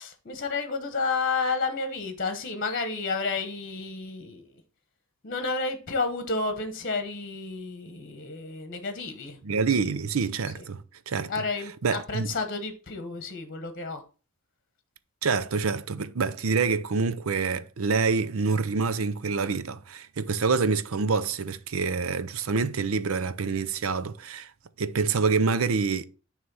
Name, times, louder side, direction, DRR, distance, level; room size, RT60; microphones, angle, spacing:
voice 1, 0.0-4.6 5.2-9.4 10.5-10.6 11.3-14.0, left 4 dB, 45° left, 1.1 m, -31 dB
voice 2, 9.4-11.3 11.8-12.3 15.2-24.5 24.8-26.0, right 4 dB, 80° right, 0.6 m, -26 dB
9.5 x 3.2 x 5.5 m
head